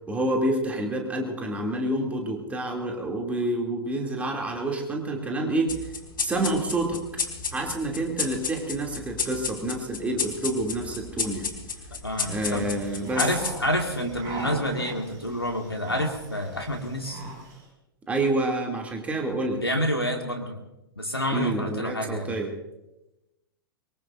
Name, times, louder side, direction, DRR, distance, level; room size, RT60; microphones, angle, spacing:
voice 1, 0.1-5.8 6.2-7.0 7.5-11.5 12.3-13.3 18.1-19.6 21.3-22.5, right 1 dB, 10° right, 1 dB, 2.9 m, -28 dB
sound 1, 5.7-14.6, left 5 dB, 60° left, 4.1 m, -33 dB
voice 2, 12.0-12.7 13.2-17.2 19.5-20.6 21.0-22.4, equal, 85° left, 3 dB, 2.1 m, -28 dB
sound 2, 12.1-17.6, right 2 dB, 30° right, 6.9 m, -41 dB
23.5 x 23.0 x 2.7 m, 0.96 s
figure-of-eight pair, 100°, 12 cm